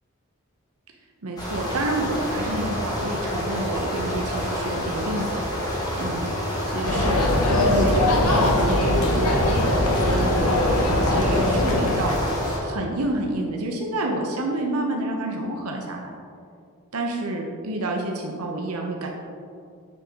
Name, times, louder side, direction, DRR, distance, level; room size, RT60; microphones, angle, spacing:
voice 1, 1.2-5.7 6.0-6.3 6.6-9.4 10.0-10.6 11.1-16.1 16.9-19.1, right 1 dB, 85° right, 1 dB, 0.8 m, -29 dB
sound 1, 1.4-12.6, equal, 20° left, 1.4 m, -28 dB
sound 2, 6.8-12.2, left 1 dB, 80° left, 1.2 m, -21 dB
8.7 x 6.2 x 3.7 m, 2.4 s
head